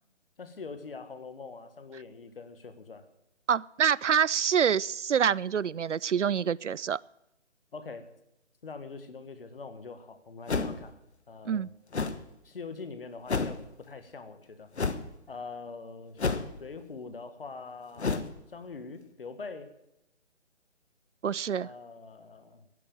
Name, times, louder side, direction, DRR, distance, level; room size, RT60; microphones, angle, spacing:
voice 1, 0.4-3.1 7.7-8.1 8.6-11.0 11.3-11.7 12.4-14.7 15.3-18.2 18.5-19.7 21.6-22.6, left 4 dB, 50° left, 1.7 m, -43 dB
voice 2, 3.5-7.0 11.5-11.7 21.2-21.7, right 7 dB, 75° right, 0.5 m, -26 dB
sound 1, 10.5-10.9 11.9-12.2 13.3-13.6 14.8-15.1 16.2-16.7 18.0-18.3, left 4 dB, 65° left, 1.2 m, -30 dB
12.0 x 10.5 x 6.9 m
figure-of-eight pair, 150°, 36 cm